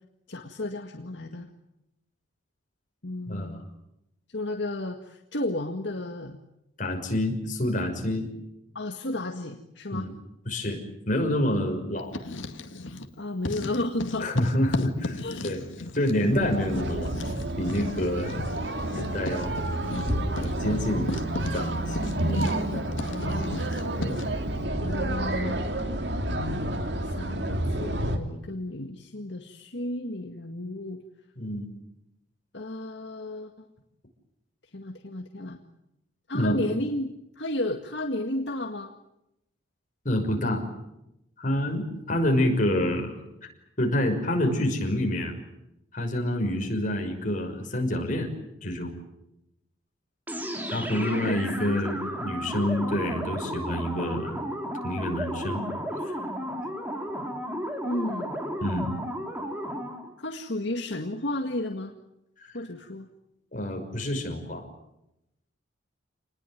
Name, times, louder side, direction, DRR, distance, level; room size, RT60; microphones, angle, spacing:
voice 1, 0.3-1.5 3.0-3.6 4.3-6.4 8.7-10.1 13.2-14.3 15.2-15.5 23.1-23.6 24.8-25.6 27.2-31.0 32.5-33.7 34.7-35.6 36.3-38.9 50.9-51.8 57.8-58.3 60.2-61.9 62.5-63.1, left 1 dB, 65° left, 4 dB, 1.9 m, -33 dB
voice 2, 3.3-3.6 6.8-8.3 9.9-10.1 10.5-10.8 11.1-12.1 14.2-15.6 15.9-17.1 17.6-18.4 18.9-19.6 20.2-21.1 21.5-22.0 24.0-24.2 31.4-31.7 36.3-36.6 40.0-40.6 41.4-43.5 43.8-45.4 45.9-48.3 48.6-48.9 50.7-54.4 54.8-55.6 56.0-56.2 58.6-58.9 62.4-62.6 63.5-64.6, left 1 dB, 40° left, 3 dB, 6.0 m, -27 dB
Writing, 12.0-13.1 13.4-24.4, left 2 dB, 85° left, 2.2 m, -36 dB
sound 1, 16.3-28.2, right 1 dB, 60° right, 2.7 m, -29 dB
sound 2, 50.3-60.1, equal, 10° right, 3.4 m, -33 dB
28.5 x 20.5 x 9.4 m, 0.86 s
head